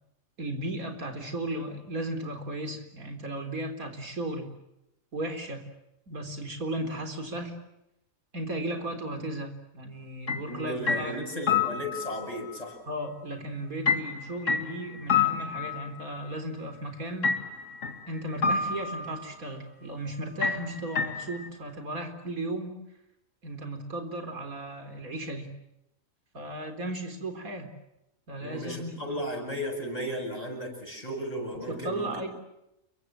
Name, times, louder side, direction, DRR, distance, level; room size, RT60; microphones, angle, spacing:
voice 1, 0.4-4.5 5.1-5.7 6.1-7.6 8.3-11.2 12.9-17.3 18.1-22.8 23.4-25.5 26.3-27.7 28.3-29.2 31.7-32.3, right 1 dB, 85° right, 7 dB, 4.3 m, -35 dB
sound 1, 10.3-10.5 10.9-12.3 13.9-16.2 17.2-18.1 18.4-19.2 20.4-21.5, left 6 dB, 65° left, 2.7 m, -28 dB
voice 2, 10.5-12.8 28.4-32.3, equal, 25° left, 0 dB, 8.0 m, -35 dB
29.0 x 23.5 x 7.5 m, 0.87 s
omnidirectional pair, 1.4 m